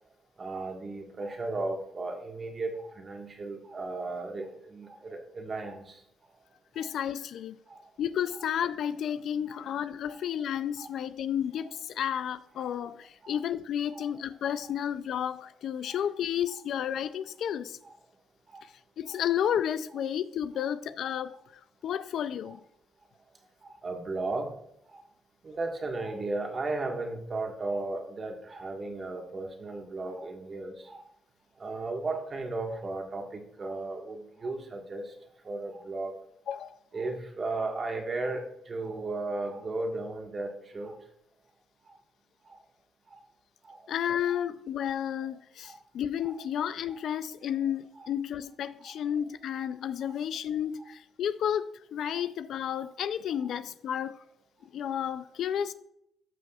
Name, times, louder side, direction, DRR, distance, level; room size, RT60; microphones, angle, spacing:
voice 1, 0.4-6.0 6.7-6.9 7.7-7.8 9.5-9.6 10.1-10.2 10.8-10.9 12.0-12.1 13.2-13.4 13.9-14.1 15.9-16.0 17.8-17.9 18.5-18.6 19.1-19.2 23.6-24.5 24.9-25.0 25.4-31.0 31.6-35.1 35.4-36.2 36.9-41.0 41.8-42.0 42.4-42.6 43.1-43.2 43.6-43.8 45.6-45.8 46.2-46.3 46.9-47.0 47.9-48.1 48.8-48.9 50.0-50.1 52.1-52.2 53.4-53.5, right 2 dB, 35° right, 1.6 m, -35 dB
voice 2, 6.8-7.6 8.0-17.8 18.6-18.7 19.0-21.4 21.8-22.6 36.5-36.8 43.9-54.2 54.6-55.7, left 9 dB, 70° left, 0.4 m, -32 dB
13.0 x 6.1 x 2.4 m
cardioid pair, 90°, 0 cm